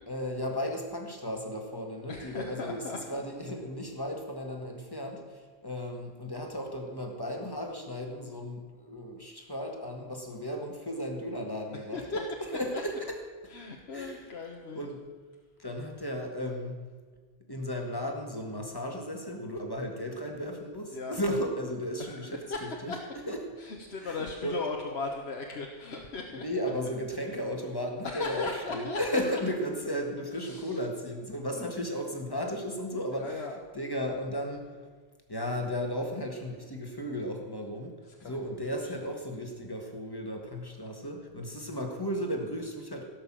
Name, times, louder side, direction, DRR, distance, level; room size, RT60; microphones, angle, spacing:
voice 1, 0.1-13.2 13.9-14.3 14.7-15.0 15.6-16.8 17.5-23.0 23.3-23.4 24.0-24.6 26.4-33.4 33.7-34.8 35.3-43.0, equal, 20° left, 2 dB, 1.8 m, -35 dB
voice 2, 2.1-3.2 11.9-12.2 13.5-14.9 20.9-21.2 22.1-22.2 22.5-22.6 22.9-23.0 23.6-26.4 28.0-29.0 30.4-30.7 31.5-31.7 33.1-33.5 38.2-38.4 38.7-39.1, left 3 dB, 85° left, 1 dB, 1.4 m, -37 dB
17.0 x 6.5 x 7.5 m, 1.5 s
omnidirectional pair, 1.1 m